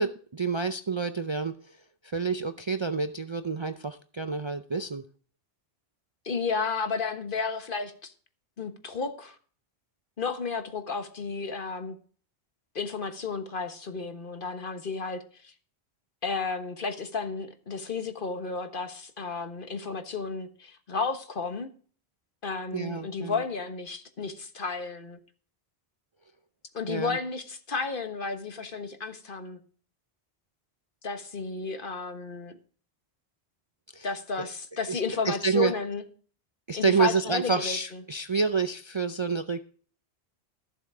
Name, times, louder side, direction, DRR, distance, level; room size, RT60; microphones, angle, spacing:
voice 1, 0.0-1.8 2.0-5.0 22.7-23.4 26.9-27.2 33.9-34.1 34.4-34.5 34.9-35.7 36.7-39.6, right 4 dB, 35° right, 9 dB, 0.5 m, -28 dB
voice 2, 6.2-8.1 8.6-9.4 10.2-12.0 12.7-15.5 16.2-21.7 22.4-25.2 26.7-29.6 31.0-32.5 34.0-36.0 36.7-38.0, left 4 dB, 55° left, 8 dB, 1.5 m, -32 dB
14.5 x 7.2 x 4.9 m, 0.43 s
omnidirectional pair, 1.1 m